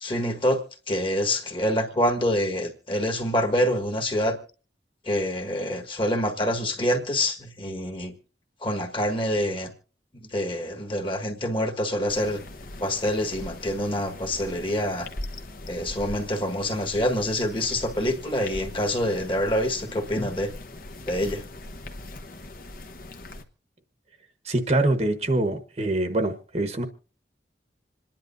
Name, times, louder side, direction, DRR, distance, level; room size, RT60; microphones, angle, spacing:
voice 1, 0.0-4.4 5.0-8.2 8.6-9.7 10.1-12.4 12.8-15.1 15.7-20.5 21.1-21.4, left 1 dB, 30° left, 1.4 m, -26 dB
sound 1, 12.1-23.4, left 1 dB, 55° left, 1.0 m, -40 dB
voice 2, 24.4-26.8, right 2 dB, 40° right, 1.1 m, -24 dB
27.0 x 10.5 x 2.6 m
head